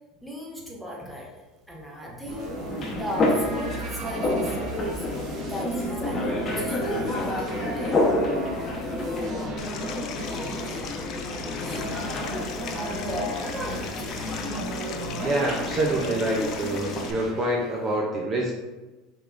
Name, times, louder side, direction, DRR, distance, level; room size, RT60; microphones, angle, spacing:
voice 1, 0.2-1.3 1.7-2.6 3.0-5.1 5.5-8.0 8.6-8.7 10.4-11.0 11.4-12.1 12.7-14.8, equal, ahead, -3 dB, 1.0 m, -36 dB
sound 1, 2.3-18.0, right 2 dB, 50° right, 0.9 m, -38 dB
sound 2, 2.4-17.3, left 1 dB, 30° left, 0.9 m, -29 dB
Stream, 9.6-17.1, left 7 dB, 45° left, 0.5 m, -39 dB
voice 2, 15.2-18.5, right 1 dB, 30° right, -1 dB, 0.6 m, -26 dB
5.4 x 3.6 x 2.5 m, 1.1 s
supercardioid pair, 130°, 0 cm